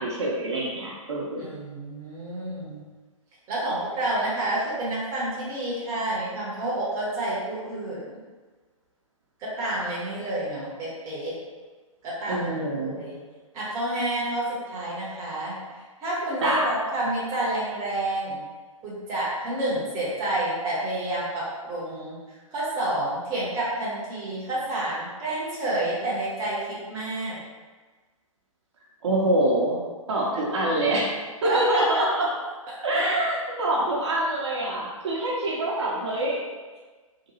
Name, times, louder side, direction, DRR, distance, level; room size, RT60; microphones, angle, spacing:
voice 1, 0.0-1.5 12.3-13.0 16.4-16.7 29.0-29.8 30.1-31.1 31.4-32.3 32.8-36.4, right 1 dB, 50° right, -4 dB, 0.6 m, -25 dB
voice 2, 1.4-2.8 3.5-8.2 9.4-11.4 12.0-13.2 13.5-15.6 16.0-18.4 18.8-27.4 30.3-30.4 31.4-31.8 32.9-33.1, right 1 dB, 20° right, -7 dB, 0.7 m, -29 dB
2.8 x 2.2 x 2.7 m, 1.3 s
figure-of-eight pair, 125°, 18 cm